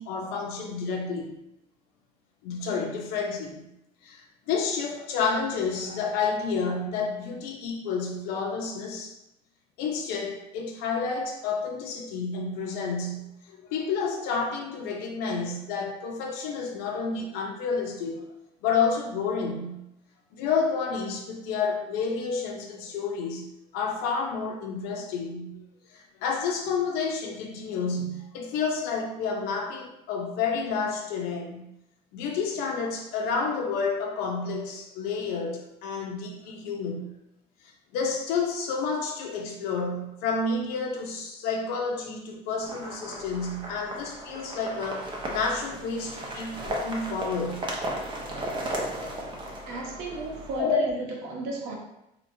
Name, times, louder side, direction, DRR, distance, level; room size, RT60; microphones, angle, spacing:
voice 1, 0.0-1.4 2.4-3.6 4.0-9.2 9.8-18.2 18.6-19.8 20.3-23.5 23.7-31.7 32.1-37.1 37.6-47.7 49.4-49.5 50.6-50.8, left 5 dB, 85° left, 1 dB, 0.8 m, -30 dB
sound 1, 42.6-50.6, right 1 dB, 30° right, 0.7 m, -35 dB
voice 2, 49.7-51.8, right 1 dB, 80° right, -1 dB, 1.1 m, -33 dB
4.2 x 2.9 x 2.7 m, 0.87 s
cardioid pair, 155°, 16 cm